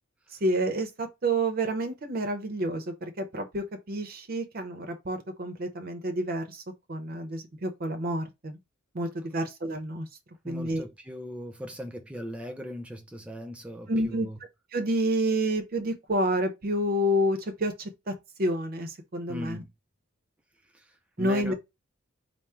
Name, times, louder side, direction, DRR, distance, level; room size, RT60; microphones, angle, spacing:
voice 1, 0.4-6.6 6.9-8.6 8.9-10.1 10.5-10.8 13.9-14.3 14.7-18.1 18.4-19.6 21.2-21.5, right 1 dB, 45° right, 0.6 m, -29 dB
voice 2, 10.4-14.4 19.3-19.7 20.7-21.5, equal, 5° right, 0.4 m, -39 dB
3.5 x 2.0 x 4.2 m
head